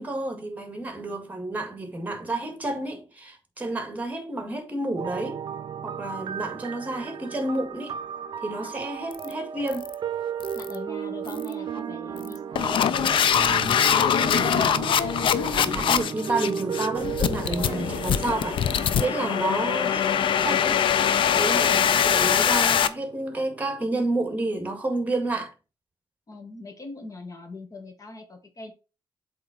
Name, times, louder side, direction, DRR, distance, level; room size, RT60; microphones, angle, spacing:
voice 1, 0.0-5.4 5.8-8.0 8.4-9.8 15.3-18.6 19.0-20.8 21.4-25.5, right 2 dB, 20° right, 1.9 m, -30 dB
sound 1, 5.0-23.9, right 8 dB, 60° right, 0.6 m, -35 dB
sound 2, 9.1-9.3 9.7-9.9 10.4-10.8 11.3-11.5 12.2-22.9, left 8 dB, 80° left, 0.5 m, -23 dB
voice 2, 10.5-13.7 26.3-28.7, left 3 dB, 40° left, 1.8 m, -42 dB
7.8 x 3.7 x 4.3 m
cardioid pair, 100°, 9 cm